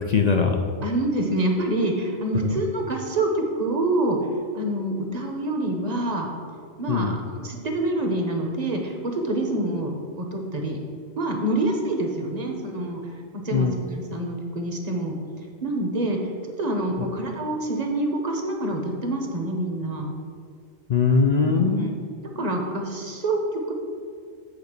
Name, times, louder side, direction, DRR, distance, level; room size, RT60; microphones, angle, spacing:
voice 1, 0.1-0.6 2.4-2.5 6.9-7.1 13.5-13.7 20.9-21.9, left 5 dB, 50° left, 3 dB, 0.5 m, -20 dB
voice 2, 0.8-4.2 4.5-6.3 6.8-10.8 11.2-13.0 13.3-15.1 15.6-16.2 16.6-20.1 21.4-22.0 22.4-23.7, right 1 dB, 40° right, 2 dB, 1.0 m, -26 dB
8.0 x 3.9 x 6.6 m, 2.2 s
omnidirectional pair, 1.2 m